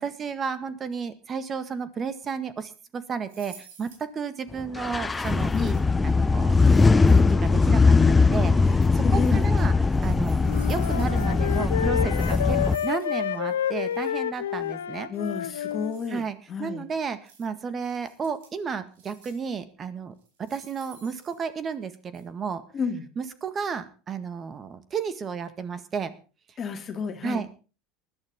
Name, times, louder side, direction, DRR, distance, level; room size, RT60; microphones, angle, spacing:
voice 1, 0.0-5.8 6.0-6.5 7.1-10.4 10.7-15.1 16.1-22.6 23.2-26.1 27.2-27.6, right 6 dB, 35° right, 12 dB, 1.8 m, -33 dB
sound 1, 3.3-4.1 5.1-5.9 6.5-7.5 8.6-9.5 9.8-13.2 13.4-13.5 13.8-14.1 15.2-16.2 17.2-17.5 17.8-18.6 18.9-19.5 20.2-21.8 22.1-22.2, right 5 dB, 80° right, 5.8 m, -52 dB
sound 2, 4.8-12.8, left 4 dB, 15° left, 0.7 m, -20 dB
voice 2, 5.5-5.9 9.0-9.5 15.1-16.2 16.5-16.8 22.7-23.0 26.6-27.4, left 5 dB, 35° left, 5 dB, 2.1 m, -31 dB
Wind instrument woodwind instrument, 10.4-15.9, left 10 dB, 85° left, 0.6 m, -29 dB
20.0 x 12.0 x 3.8 m, 0.35 s
hypercardioid pair, 85°, 0 cm